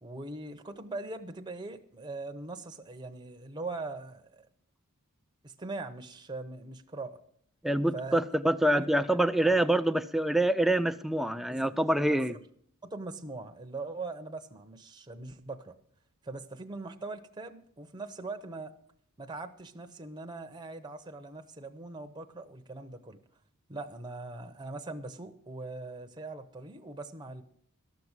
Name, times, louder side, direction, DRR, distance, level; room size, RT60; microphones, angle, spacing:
voice 1, 0.0-4.5 5.4-7.2 7.9-8.2 8.7-8.9 9.4-9.5 11.5-11.6 12.8-15.7 16.2-18.7 19.2-23.2 23.7-27.4, right 3 dB, 20° right, 6 dB, 0.8 m, -41 dB
voice 2, 7.6-12.3, right 1 dB, ahead, 10 dB, 0.4 m, -26 dB
13.0 x 6.0 x 8.1 m, 0.65 s
head